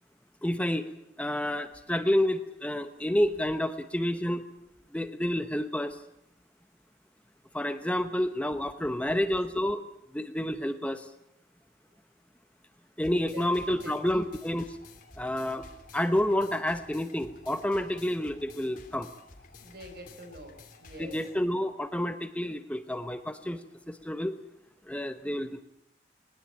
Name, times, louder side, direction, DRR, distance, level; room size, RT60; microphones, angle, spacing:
voice 1, 0.4-0.9 1.2-4.4 4.9-6.0 7.5-9.8 10.1-11.1 13.0-14.6 15.2-15.7 15.9-19.1 21.0-23.6 23.9-24.3 24.9-25.6, left 1 dB, 10° left, 9 dB, 0.9 m, -29 dB
voice 2, 9.0-9.3 11.9-12.0 13.2-14.3 19.6-21.3 24.0-24.1 25.0-25.1, equal, 60° right, 7 dB, 4.6 m, -47 dB
sound 1, 13.0-21.4, left 3 dB, 50° left, 2.8 m, -52 dB
21.0 x 19.5 x 8.8 m, 0.78 s
head